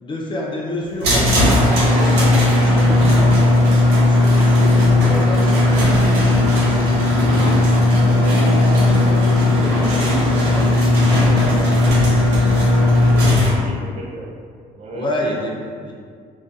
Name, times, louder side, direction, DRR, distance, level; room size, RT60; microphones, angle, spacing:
voice 1, 0.0-7.7 8.5-12.2 12.6-13.2 14.9-15.9, left 1 dB, 30° left, -3 dB, 0.4 m, -30 dB
sound 1, 1.0-13.5, left 1 dB, 80° right, 0.7 m, -15 dB
voice 2, 13.0-14.4 14.7-15.1, right 2 dB, 45° right, -3 dB, 0.5 m, -34 dB
2.2 x 2.1 x 2.6 m, 2.1 s
cardioid pair, 110°, 17 cm